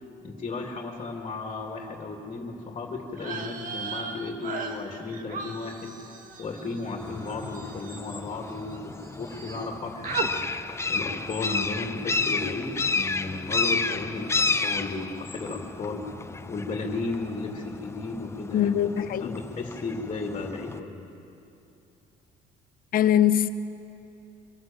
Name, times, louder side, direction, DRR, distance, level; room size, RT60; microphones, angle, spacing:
voice 1, 0.2-5.9 6.4-10.5 10.9-16.1 16.5-21.1, left 3 dB, 30° left, 2.6 m, -34 dB
sound 1, 3.1-8.8 9.0-9.7 10.0-10.3, right 4 dB, 55° right, 1.7 m, -37 dB
sound 2, 7.0-20.8, left 4 dB, 15° left, 0.6 m, -32 dB
voice 2, 18.5-19.4 22.9-23.5, left 10 dB, 55° left, 0.9 m, -22 dB
25.0 x 16.5 x 7.5 m
cardioid pair, 110°, 17 cm